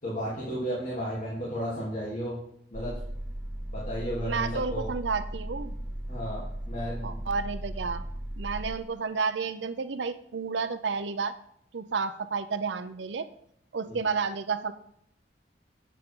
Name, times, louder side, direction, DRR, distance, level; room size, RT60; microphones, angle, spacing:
voice 1, 0.0-2.4 2.7-2.9 3.7-4.9 6.1-7.2 13.9-14.0, equal, 45° left, -7 dB, 3.1 m, -33 dB
sound 1, 2.7-8.8, right 1 dB, 5° right, 0.4 m, -36 dB
voice 2, 4.2-5.7 7.0-8.0 8.4-11.4 11.7-13.3 13.7-14.7, right 5 dB, 75° right, 12 dB, 0.6 m, -31 dB
12.0 x 9.0 x 3.7 m, 0.71 s
head